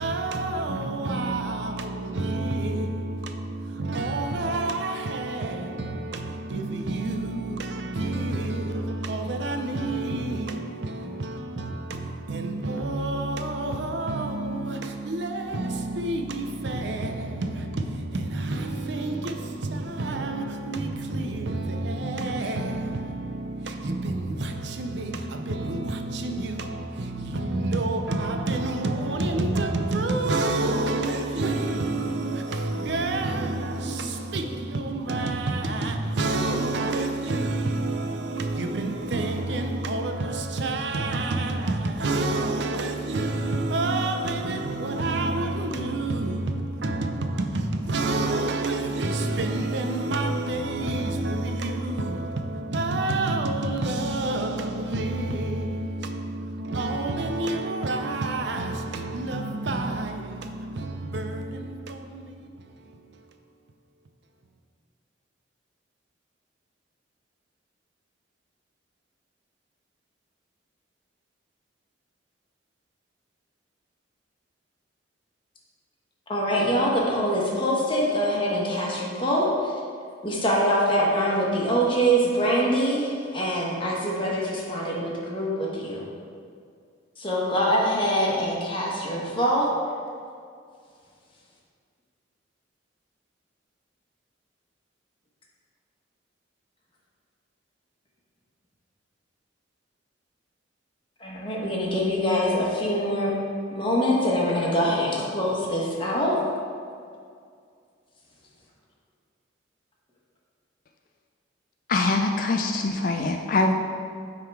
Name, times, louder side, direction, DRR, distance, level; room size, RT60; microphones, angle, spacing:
voice 1, 0.0-63.2, right 2 dB, 60° right, 0.5 m, -28 dB
voice 2, 76.3-79.7 80.2-86.1 87.2-89.7 101.2-103.3 103.7-106.4, equal, 25° left, 1.3 m, -24 dB
voice 3, 111.9-113.7, left 3 dB, 45° left, 0.4 m, -23 dB
8.9 x 3.7 x 4.7 m
head